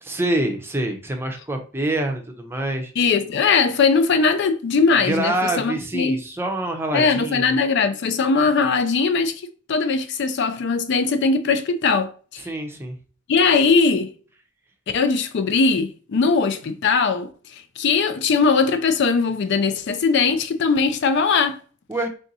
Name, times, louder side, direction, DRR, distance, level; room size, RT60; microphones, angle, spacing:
voice 1, 0.0-2.9 5.0-7.6 12.4-13.0 21.9-22.1, right 1 dB, 10° right, 0.6 m, -26 dB
voice 2, 3.0-6.2 6.9-9.4 9.7-12.4 13.3-14.1 14.9-21.6, left 4 dB, 55° left, 0.4 m, -20 dB
3.4 x 2.6 x 4.0 m
head